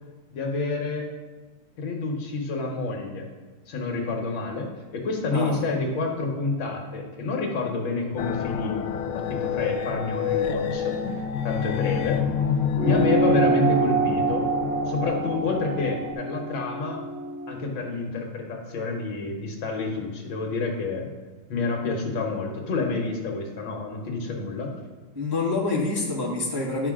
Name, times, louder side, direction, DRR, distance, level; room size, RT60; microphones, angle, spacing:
voice 1, 0.3-1.1 1.8-3.3 3.7-8.8 9.1-11.0 11.4-12.2 12.8-14.5 14.9-17.0 17.5-21.1 21.5-24.7, left 3 dB, 70° left, 2 dB, 1.8 m, -28 dB
sound 1, 8.2-16.1, left 6 dB, 90° left, 1.5 m, -28 dB
sound 2, 12.8-17.6, right 3 dB, 75° right, 1.6 m, -26 dB
voice 2, 25.1-26.9, left 3 dB, 15° right, -5 dB, 0.8 m, -27 dB
10.0 x 5.8 x 3.7 m, 1.3 s
omnidirectional pair, 2.3 m